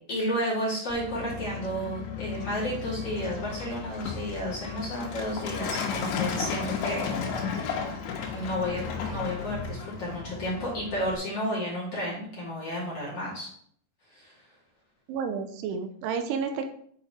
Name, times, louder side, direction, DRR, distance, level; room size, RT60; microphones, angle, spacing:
voice 1, 0.1-7.0 8.3-13.5 14.1-14.4, equal, 40° left, -6 dB, 2.7 m, -32 dB
Truck, 0.9-11.2, left 6 dB, 85° left, 3.6 m, -34 dB
voice 2, 15.1-16.7, right 6 dB, 90° right, 6 dB, 3.3 m, -31 dB
10.0 x 4.9 x 4.3 m, 0.63 s
omnidirectional pair, 5.3 m